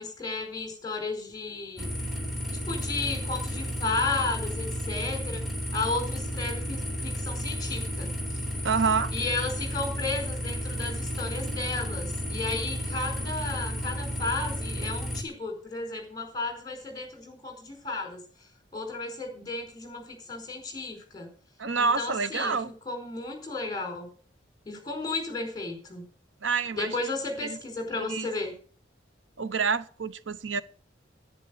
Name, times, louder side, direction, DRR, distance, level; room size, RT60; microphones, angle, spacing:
voice 1, 0.0-1.9 2.6-5.4 5.7-8.1 9.1-18.2 18.7-21.3 21.8-22.5 22.9-24.1 24.6-26.0 26.7-28.5, left 3 dB, 20° left, 4.6 m, -33 dB
sound 1, 1.8-15.2, equal, ahead, 2.8 m, -32 dB
voice 2, 8.6-9.1 21.6-22.7 26.4-26.9 27.4-27.6 27.9-28.3 29.4-30.6, right 5 dB, 90° right, 0.9 m, -27 dB
10.5 x 9.9 x 6.6 m
head